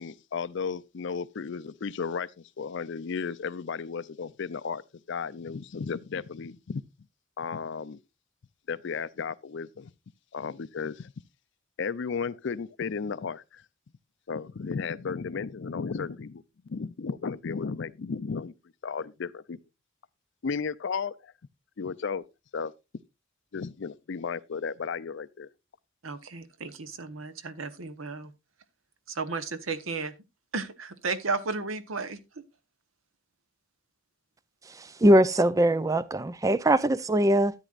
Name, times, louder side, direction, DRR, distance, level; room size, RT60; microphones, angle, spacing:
voice 1, 0.0-2.3 2.6-4.8 5.1-6.8 7.4-8.0 8.7-9.9 10.3-11.1 11.8-13.6 14.3-16.4 16.7-18.5 18.8-19.6 20.4-21.3 21.8-22.2 22.5-22.7 23.5-25.5, left 5 dB, 60° left, 0.5 m, -34 dB
voice 2, 26.0-28.3 29.1-30.1 30.5-32.2, right 4 dB, 80° right, 1.1 m, -33 dB
voice 3, 34.8-37.5, right 1 dB, 15° right, 0.4 m, -22 dB
13.0 x 9.1 x 2.5 m
head